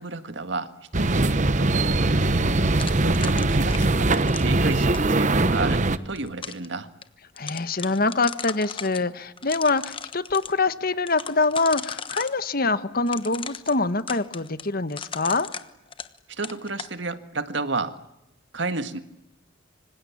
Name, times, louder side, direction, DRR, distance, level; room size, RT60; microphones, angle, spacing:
voice 1, 0.0-2.3 3.0-6.9 16.3-18.0 18.5-19.0, right 3 dB, 60° right, 1.8 m, -31 dB
sound 1, 0.9-6.0, right 2 dB, 40° right, 1.0 m, -21 dB
sound 2, 2.8-5.1 5.9-6.7 7.0-7.1 7.4-9.0 9.4-10.5 11.1-12.4 13.1-16.2 16.4-16.9, left 6 dB, 25° left, 1.2 m, -36 dB
voice 2, 7.4-15.5, left 3 dB, 50° left, 1.3 m, -24 dB
26.0 x 25.5 x 8.6 m
head